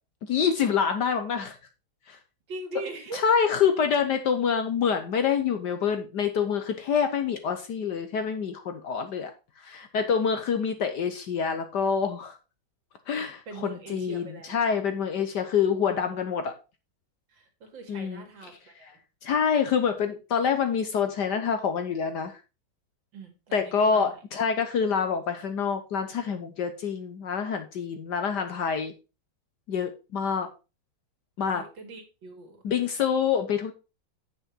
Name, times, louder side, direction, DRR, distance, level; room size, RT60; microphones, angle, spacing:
voice 1, 0.2-1.6 2.1-2.2 3.1-9.3 9.6-12.4 13.1-16.5 17.9-18.2 19.2-22.4 23.5-28.9 29.7-30.5 31.4-31.6 32.6-33.7, left 6 dB, 60° left, 8 dB, 1.3 m, -26 dB
voice 2, 2.5-3.2 13.5-14.6 17.3-19.0 23.1-24.2 31.4-32.6, right 3 dB, 60° right, 4 dB, 2.7 m, -41 dB
8.1 x 6.3 x 4.4 m, 0.29 s
omnidirectional pair, 2.3 m